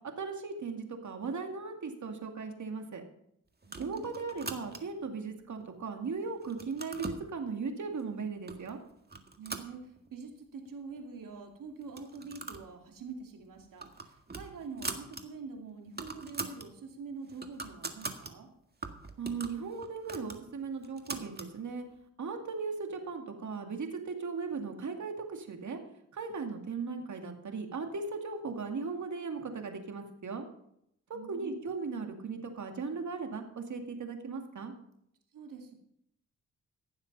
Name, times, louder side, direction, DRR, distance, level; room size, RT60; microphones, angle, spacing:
voice 1, 0.2-3.0 3.8-8.8 19.2-21.9 22.2-25.8 26.1-30.4 31.3-34.7, right 4 dB, 60° right, 4 dB, 2.3 m, -37 dB
sound 1, 3.6-5.1 5.6-6.1 6.4-7.3 8.0-8.1 8.5-8.7 9.1-10.3 10.7-10.8 11.0-11.1 11.8-12.7 13.0-13.2 13.6-15.2 15.6-15.7 15.9-16.7 17.1-18.3 18.8-21.5, right 3 dB, 30° right, 1.8 m, -42 dB
voice 2, 3.6-4.1 9.4-18.5 31.1-31.5 35.3-35.7, right 4 dB, 75° right, 3 dB, 2.5 m, -45 dB
16.0 x 7.2 x 5.5 m, 0.74 s
cardioid pair, 60°, 33 cm